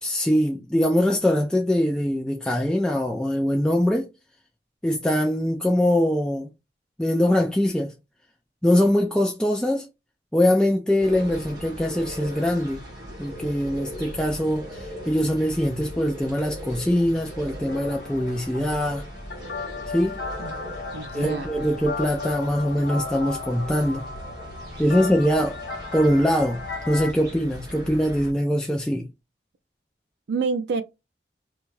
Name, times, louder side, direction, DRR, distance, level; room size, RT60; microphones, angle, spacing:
voice 1, 0.0-4.1 4.8-6.5 7.0-7.9 8.6-9.9 10.3-12.8 13.2-19.1 19.9-20.1 21.1-24.1 24.8-25.6 25.9-26.6 26.9-29.1, equal, 5° left, 0.3 m, -22 dB
sound 1, 11.0-28.3, equal, 25° right, 1.1 m, -39 dB
sound 2, 17.7-27.1, left 3 dB, 65° left, 0.8 m, -35 dB
voice 2, 20.4-21.5 24.7-24.8 30.3-30.8, right 4 dB, 70° right, 0.4 m, -29 dB
2.6 x 2.3 x 3.0 m
head